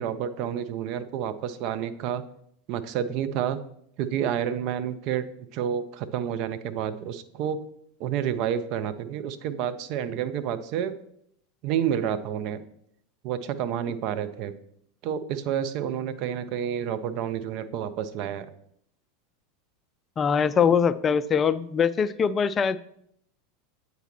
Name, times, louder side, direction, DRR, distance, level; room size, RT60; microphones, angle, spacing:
voice 1, 0.0-2.2 2.7-3.6 4.0-7.6 8.0-11.0 11.6-12.6 13.2-14.5 15.0-18.5, right 9 dB, 55° right, 12 dB, 0.4 m, -29 dB
voice 2, 20.2-22.8, left 6 dB, 30° left, 15 dB, 0.3 m, -22 dB
8.0 x 4.0 x 2.9 m, 0.72 s
hypercardioid pair, 90°, 0 cm